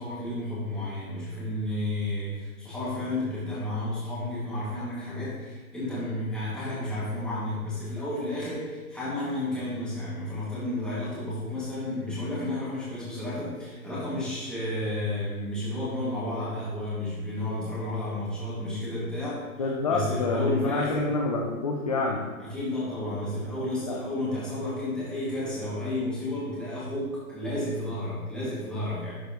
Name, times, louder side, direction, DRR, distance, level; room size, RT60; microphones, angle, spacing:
voice 1, 0.0-21.1 22.4-29.2, left 1 dB, ahead, -9 dB, 2.1 m, -32 dB
voice 2, 19.6-22.3 23.8-24.0, left 3 dB, 30° left, -1 dB, 0.4 m, -27 dB
11.5 x 4.8 x 3.0 m, 1.3 s
hypercardioid pair, 155°, 44 cm